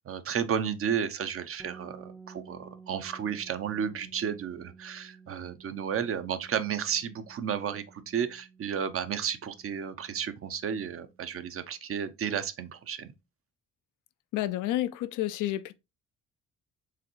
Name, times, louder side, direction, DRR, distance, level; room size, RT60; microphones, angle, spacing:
voice 1, 0.1-13.1, right 8 dB, 45° right, 0.6 m, -32 dB
sound 1, 1.6-11.3, right 5 dB, 5° right, 0.5 m, -53 dB
voice 2, 14.3-15.7, left 14 dB, 85° left, 0.5 m, -30 dB
4.8 x 3.2 x 3.0 m
cardioid pair, 90°, 30 cm